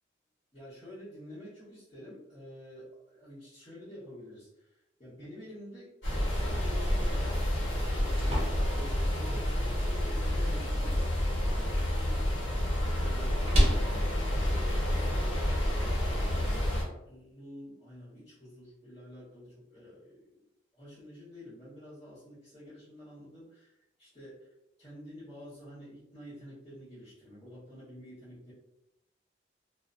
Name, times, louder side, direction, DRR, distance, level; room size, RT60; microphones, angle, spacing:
voice 1, 0.5-5.9 6.2-20.5 20.7-24.5 24.8-28.5, left 1 dB, 30° left, -13 dB, 1.2 m, -49 dB
sound 1, 6.0-16.8, left 1 dB, 80° left, 0.9 m, -29 dB
sound 2, 7.7-15.7, equal, 35° right, 0.6 m, -35 dB
2.4 x 2.1 x 2.4 m, 0.88 s
head